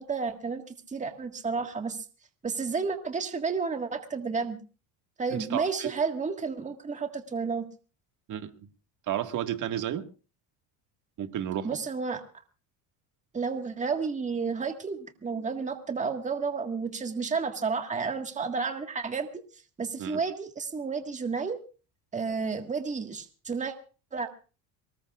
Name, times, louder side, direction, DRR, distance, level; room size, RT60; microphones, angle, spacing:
voice 1, 0.0-2.0 2.4-4.6 5.2-7.7 11.6-12.2 13.3-19.4 19.8-21.6 22.1-23.7 24.1-24.3, right 5 dB, 15° right, 5 dB, 1.7 m, -31 dB
voice 2, 5.3-5.9 8.3-8.7 9.1-10.1 11.2-11.8 20.0-20.2, right 10 dB, 45° right, 7 dB, 1.9 m, -32 dB
23.5 x 20.5 x 2.5 m, 0.36 s
cardioid pair, 140°, 41 cm